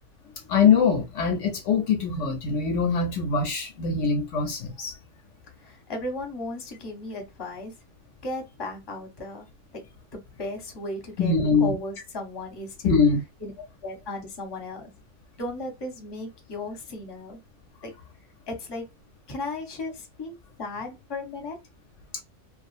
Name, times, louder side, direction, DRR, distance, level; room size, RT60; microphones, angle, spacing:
voice 1, 0.5-4.9 11.2-11.7 12.8-13.2, left 5 dB, 70° left, 0.8 m, -23 dB
voice 2, 5.6-7.7 8.2-9.5 9.7-9.8 10.1-13.0 13.4-14.9 15.4-17.4 17.8-17.9 18.5-18.9 19.3-21.6, left 2 dB, 25° left, 0.7 m, -35 dB
2.4 x 2.4 x 2.4 m
omnidirectional pair, 1.4 m